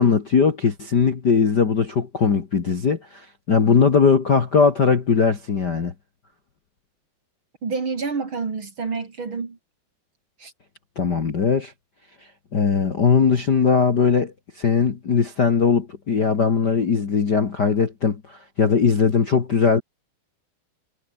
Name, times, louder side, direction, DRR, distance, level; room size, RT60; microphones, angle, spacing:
voice 1, 0.0-5.9 10.9-11.7 12.5-19.8, left 5 dB, 90° left, 0.9 m, -19 dB
voice 2, 7.6-9.6 10.4-10.5, right 4 dB, 35° right, 2.8 m, -28 dB
omnidirectional pair, 5.1 m